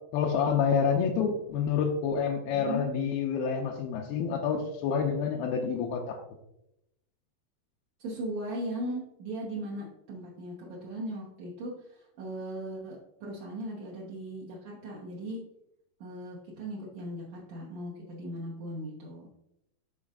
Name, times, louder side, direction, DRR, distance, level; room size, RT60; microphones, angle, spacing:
voice 1, 0.1-6.2, left 6 dB, 85° left, 1 dB, 2.2 m, -28 dB
voice 2, 8.0-11.7 12.2-15.4 16.0-19.3, right 1 dB, 70° right, -5 dB, 1.7 m, -38 dB
12.0 x 4.0 x 2.4 m, 0.84 s
omnidirectional pair, 4.6 m